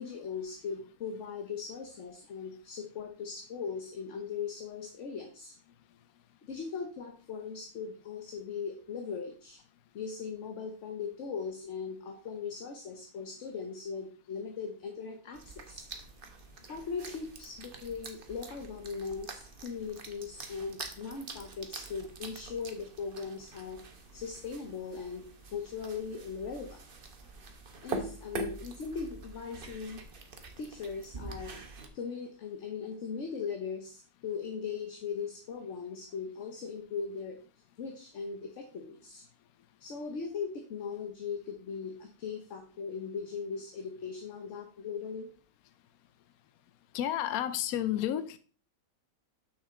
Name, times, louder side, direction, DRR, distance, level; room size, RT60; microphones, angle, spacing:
voice 1, 0.0-5.5 6.4-9.6 9.9-15.8 16.7-25.2 25.5-26.8 27.8-30.0 30.6-31.5 31.9-37.4 37.8-39.2 39.8-45.3, left 5 dB, 60° left, 4 dB, 1.2 m, -39 dB
sound 1, 15.3-31.9, right 3 dB, 45° right, 1.0 m, -45 dB
voice 2, 46.9-48.4, left 11 dB, 80° left, 12 dB, 1.1 m, -31 dB
6.6 x 6.2 x 3.7 m, 0.40 s
omnidirectional pair, 1.6 m